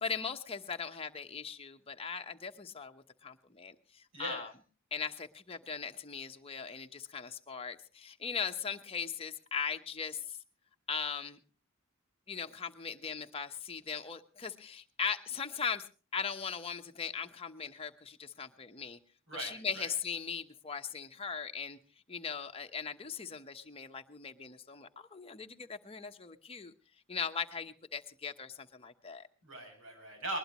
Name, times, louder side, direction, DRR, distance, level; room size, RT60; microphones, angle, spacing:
voice 1, 0.0-4.5 4.9-10.4 10.9-11.4 12.3-15.8 16.1-19.0 19.3-21.8 22.1-26.7 27.1-29.2, left 6 dB, 30° left, 6 dB, 1.0 m, -39 dB
voice 2, 4.1-4.4 19.3-19.9 29.4-30.4, right 1 dB, 70° right, 4 dB, 7.4 m, -40 dB
20.5 x 20.5 x 3.1 m, 0.36 s
head